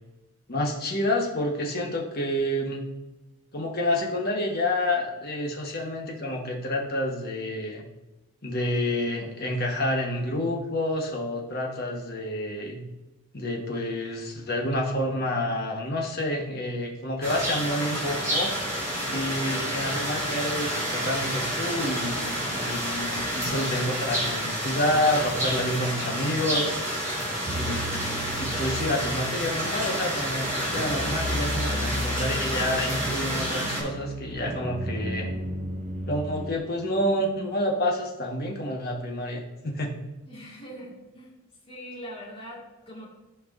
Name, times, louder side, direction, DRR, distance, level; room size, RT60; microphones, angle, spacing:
voice 1, 0.5-2.9 3.5-7.9 8.4-12.8 13.3-18.5 19.0-26.7 27.5-35.4 36.1-39.9, left 1 dB, 45° left, -1 dB, 1.3 m, -29 dB
sound 1, 17.2-33.8, equal, 15° right, 2.5 m, -29 dB
sound 2, 27.5-36.6, equal, 35° right, 0.6 m, -34 dB
voice 2, 40.3-41.3 41.7-43.1, equal, 25° left, -5 dB, 1.9 m, -42 dB
13.5 x 4.6 x 2.6 m, 1.1 s
head